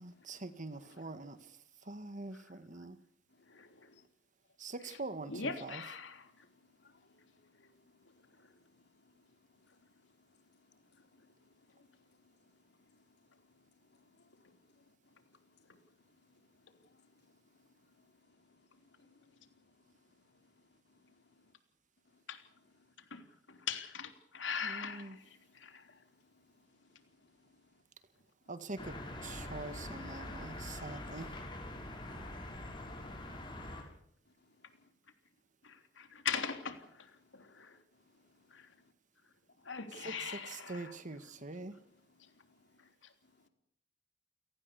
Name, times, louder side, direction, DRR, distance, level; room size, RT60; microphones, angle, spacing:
voice 1, 0.0-1.4 1.8-2.9 4.6-5.8 24.6-25.2 28.5-31.4 40.0-41.8, right 2 dB, 45° right, 1.7 m, -44 dB
voice 2, 5.3-6.3 8.4-8.5 22.3-22.4 23.1-23.2 23.5-25.8 31.5-31.6 35.6-37.8 38.5-38.7 39.6-41.0, left 6 dB, 90° left, 3.4 m, -41 dB
voice 3, 6.4-9.7 10.2-10.8 11.1-12.6 12.9-13.0 13.3-13.6 14.0-14.5 14.7-14.8 15.3-15.4 16.3-17.3 17.6-17.9 18.3-19.7 20.9-21.4 25.4-27.0 27.4-27.6 33.8-33.9 34.4-34.5 34.8-34.9 37.2-37.3 37.6-37.8 38.4-38.7 39.6-39.7 42.1-42.9, left 3 dB, 65° left, 3.4 m, -69 dB
sound 1, 28.8-33.8, left 1 dB, 25° left, 6.4 m, -44 dB
29.5 x 18.5 x 7.0 m
head